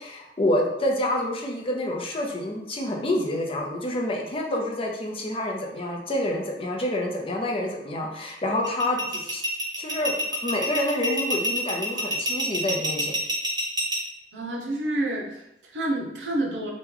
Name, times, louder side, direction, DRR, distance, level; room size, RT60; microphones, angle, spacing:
voice 1, 0.0-9.4 9.8-10.1 10.4-13.2, left 1 dB, 30° left, -1 dB, 0.5 m, -28 dB
sound 1, 8.6-14.0, equal, 25° right, 0.7 m, -27 dB
voice 2, 14.3-16.7, right 1 dB, 85° right, 0 dB, 0.7 m, -29 dB
3.0 x 2.2 x 3.6 m, 0.85 s
head